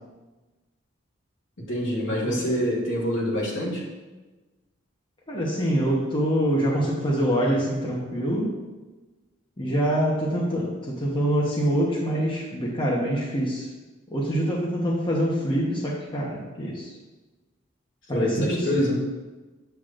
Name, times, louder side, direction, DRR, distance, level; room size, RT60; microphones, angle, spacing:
voice 1, 1.7-3.9 18.1-19.0, equal, 65° left, -3 dB, 2.0 m, -26 dB
voice 2, 5.3-8.6 9.6-13.7 14.1-16.9 18.1-19.0, equal, 25° left, -5 dB, 1.1 m, -25 dB
8.1 x 8.0 x 2.6 m, 1.2 s
head